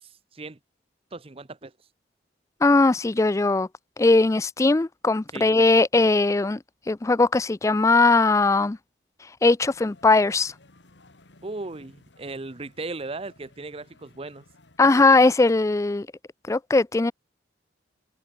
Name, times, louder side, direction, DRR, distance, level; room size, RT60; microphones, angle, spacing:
voice 1, 0.0-0.6 1.1-1.7 5.3-5.5 11.4-14.4, right 3 dB, 30° right, 0.8 m, -37 dB
voice 2, 2.6-3.7 4.0-6.6 6.9-8.8 9.4-10.5 14.8-16.1 16.5-17.1, left 3 dB, 15° left, 0.3 m, -19 dB
sound 1, 9.6-14.8, left 2 dB, 75° left, 2.3 m, -56 dB
head